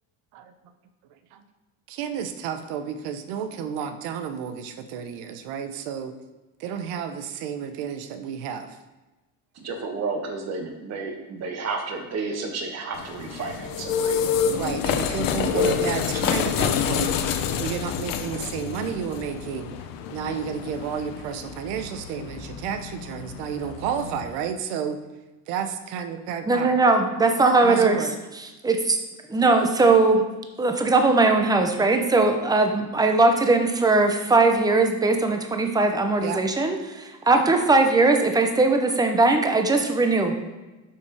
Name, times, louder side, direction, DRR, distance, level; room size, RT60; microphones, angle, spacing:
voice 1, 1.9-6.1 6.6-8.8 14.5-17.2 17.5-19.7 20.1-25.0 25.5-26.8 27.6-28.1 36.2-36.4, right 8 dB, 85° right, 9 dB, 1.0 m, -31 dB
voice 2, 9.6-14.2 15.4-16.0, right 4 dB, 45° right, 3 dB, 1.5 m, -31 dB
sound 1, 12.9-24.4, left 7 dB, 60° left, 0.9 m, -28 dB
voice 3, 26.5-28.0 28.6-29.0 29.3-30.2 30.6-40.3, right 3 dB, 10° right, 5 dB, 0.8 m, -20 dB
7.6 x 5.8 x 4.9 m, 1.1 s
cardioid pair, 140°, 37 cm